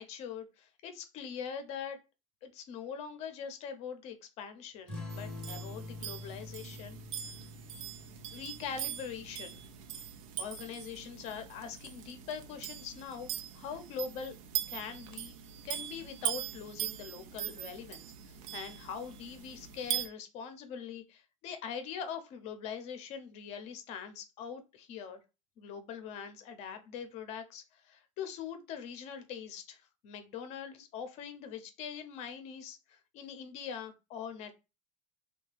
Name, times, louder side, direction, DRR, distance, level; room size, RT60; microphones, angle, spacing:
voice 1, 0.0-2.0 2.4-7.0 8.3-9.6 10.4-14.3 14.7-15.3 15.6-25.2 25.6-34.5, left 7 dB, 40° left, 8 dB, 0.6 m, -43 dB
sound 1, 4.9-9.9, left 3 dB, 5° left, 0.8 m, -46 dB
sound 2, 5.1-20.1, right 11 dB, 90° right, 0.5 m, -41 dB
2.7 x 2.2 x 3.1 m, 0.27 s
supercardioid pair, 155°, 17 cm